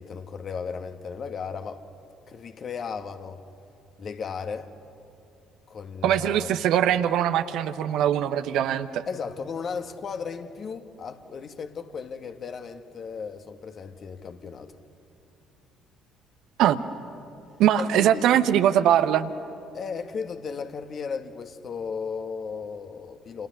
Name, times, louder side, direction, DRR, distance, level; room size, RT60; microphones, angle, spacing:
voice 1, 0.0-1.8 2.3-3.4 4.0-4.7 5.7-6.6 9.1-14.7 17.8-18.3 19.7-23.5, left 5 dB, 45° left, 1.7 m, -35 dB
voice 2, 6.0-9.0 16.6-16.8 17.6-19.3, right 10 dB, 65° right, 1.0 m, -22 dB
29.0 x 28.5 x 6.7 m
figure-of-eight pair, 50°, 0 cm